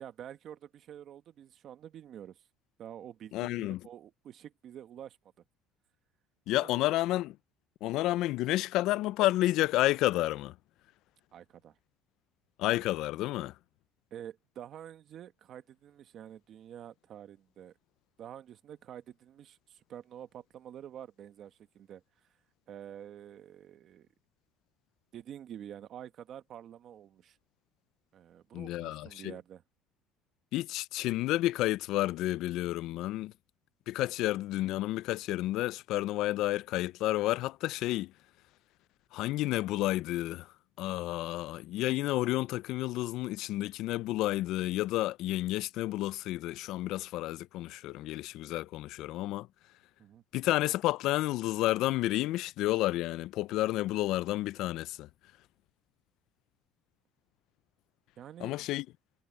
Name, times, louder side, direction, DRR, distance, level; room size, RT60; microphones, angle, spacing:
voice 1, 0.0-2.4 2.8-5.2 6.5-6.7 11.3-11.8 14.1-17.7 18.2-22.0 22.7-24.1 25.1-27.4 28.1-29.6 50.0-50.2 58.2-58.7, right 10 dB, 45° right, 1.3 m, -48 dB
voice 2, 3.3-3.8 6.5-7.4 7.8-10.5 12.6-13.5 28.5-29.3 30.5-33.3 33.9-38.1 39.1-49.5 50.3-55.1 58.4-58.9, left 16 dB, 60° left, 0.4 m, -30 dB
cardioid pair, 145°, 0 cm